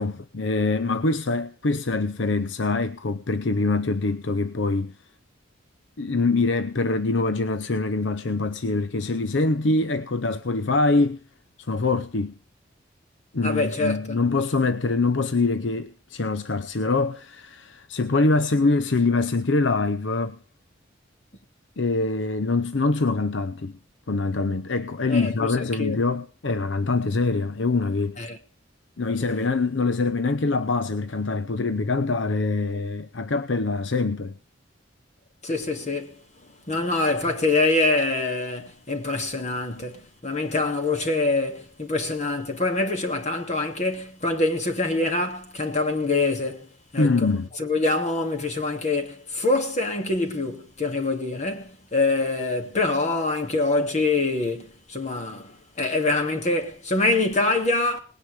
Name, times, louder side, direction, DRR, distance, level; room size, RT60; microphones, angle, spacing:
voice 1, 0.0-5.0 6.0-11.2 11.7-12.3 13.3-20.4 21.8-23.7 24.1-28.2 29.0-34.4 47.0-47.5, left 3 dB, 70° left, 0.7 m, -24 dB
voice 2, 13.4-14.2 25.1-26.0 28.2-28.4 35.4-36.2 36.7-46.7 46.9-58.0, left 2 dB, 40° left, 2.7 m, -25 dB
19.5 x 9.7 x 5.0 m
head